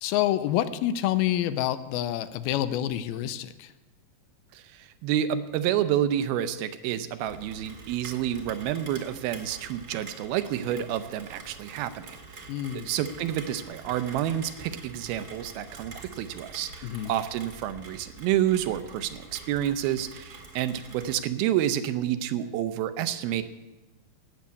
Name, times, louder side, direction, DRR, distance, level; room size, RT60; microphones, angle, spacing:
voice 1, 0.0-3.7 12.5-12.9 16.8-17.1, left 12 dB, 85° left, 13 dB, 2.5 m, -27 dB
voice 2, 4.5-23.4, right 11 dB, 80° right, 11 dB, 2.6 m, -29 dB
Rain, 7.2-21.2, right 3 dB, 40° right, 1.6 m, -46 dB
16.0 x 7.4 x 8.4 m, 1.1 s
omnidirectional pair, 4.4 m